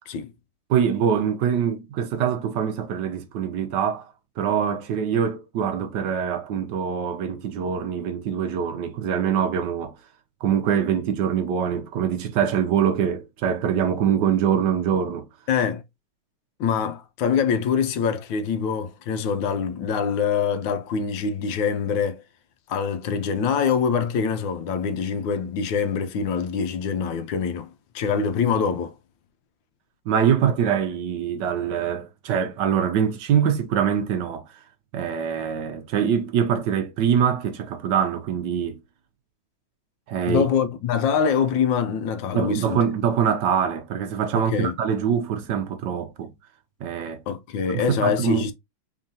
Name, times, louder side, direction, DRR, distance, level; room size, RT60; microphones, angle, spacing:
voice 1, 0.7-10.0 10.4-15.2 30.1-34.5 34.9-38.8 40.1-40.5 42.3-46.3 46.8-47.2 47.7-48.5, right 8 dB, 70° right, 1.2 m, -24 dB
voice 2, 15.5-15.8 16.6-22.2 22.7-27.7 27.9-28.9 40.3-42.8 44.3-44.7 47.3-48.5, left 6 dB, 75° left, 1.3 m, -24 dB
3.7 x 3.6 x 2.7 m
omnidirectional pair, 2.2 m